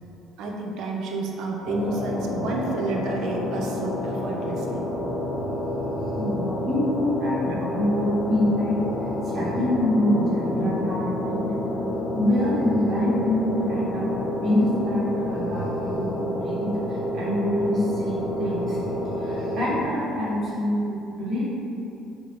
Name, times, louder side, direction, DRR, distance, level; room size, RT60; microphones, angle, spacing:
voice 1, 0.4-4.9, right 2 dB, 65° right, -1 dB, 0.5 m, -30 dB
sound 1, 1.7-19.8, left 1 dB, 25° left, 0.4 m, -29 dB
voice 2, 5.0-5.5 5.8-8.9 9.2-11.5 11.8-14.1 14.4-16.7 17.1-18.8 19.2-21.4, left 1 dB, 40° right, -9 dB, 1.3 m, -25 dB
4.8 x 2.0 x 3.2 m, 2.9 s
cardioid pair, 115°, 0 cm